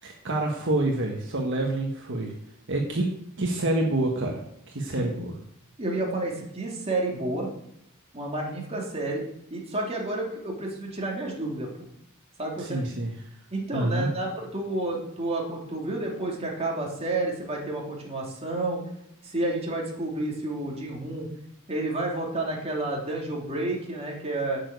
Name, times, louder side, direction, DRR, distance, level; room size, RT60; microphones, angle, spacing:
voice 1, 0.0-2.3 2.7-3.1 3.4-4.4 4.7-5.3 12.6-13.1 13.7-14.1, right 2 dB, 60° right, 0 dB, 1.5 m, -27 dB
voice 2, 5.8-7.5 8.1-9.2 9.5-11.7 12.4-12.8 13.5-18.8 19.2-21.3 21.7-24.6, right 2 dB, 30° right, -2 dB, 2.8 m, -30 dB
8.8 x 7.0 x 8.1 m, 0.77 s
head